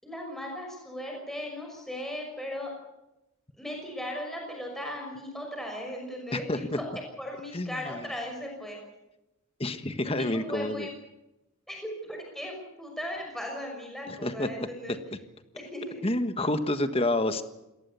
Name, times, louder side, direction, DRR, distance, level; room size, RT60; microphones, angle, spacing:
voice 1, 0.0-2.7 3.6-6.8 7.2-8.8 10.0-10.9 11.7-15.0 15.5-16.1, left 1 dB, ahead, 1 dB, 6.0 m, -37 dB
voice 2, 6.3-6.8 7.5-7.8 9.6-10.9 14.2-14.5 16.0-17.4, left 1 dB, 25° left, 10 dB, 1.5 m, -28 dB
27.0 x 18.5 x 7.0 m, 0.96 s
head